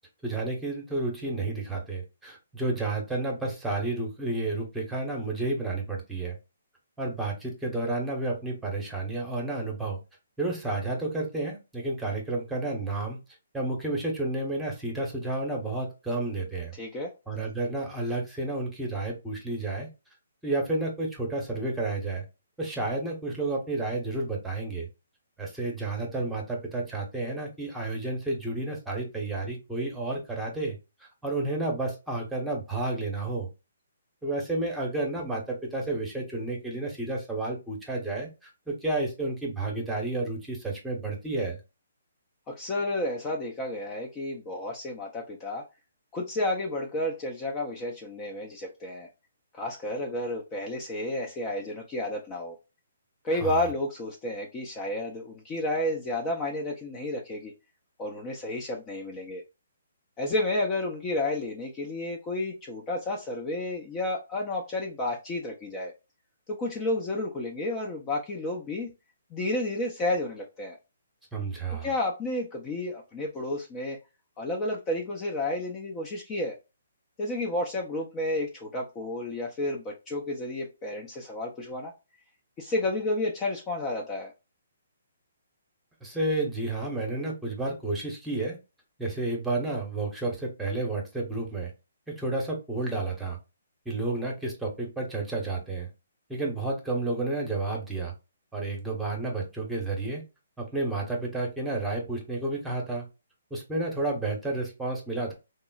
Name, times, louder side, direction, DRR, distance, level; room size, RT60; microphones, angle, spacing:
voice 1, 0.2-6.4 7.0-10.0 10.4-13.2 13.5-16.7 17.3-19.9 20.4-22.2 22.6-24.9 25.4-33.5 34.2-41.6 53.4-53.6 71.3-71.9 86.0-88.6 89.0-91.7 92.1-93.4 93.8-95.9 96.3-98.1 98.5-100.2 100.6-103.1 103.5-105.3, right 2 dB, 5° right, -1 dB, 0.9 m, -31 dB
voice 2, 16.8-17.1 42.5-45.6 46.1-49.1 49.5-52.6 53.2-57.5 58.0-59.4 60.2-65.9 66.5-68.9 69.3-70.8 71.8-74.0 74.4-76.5 77.2-81.9 82.6-84.3, left 1 dB, 20° left, 0 dB, 0.5 m, -31 dB
3.6 x 2.0 x 2.3 m, 0.27 s
hypercardioid pair, 145°, 0 cm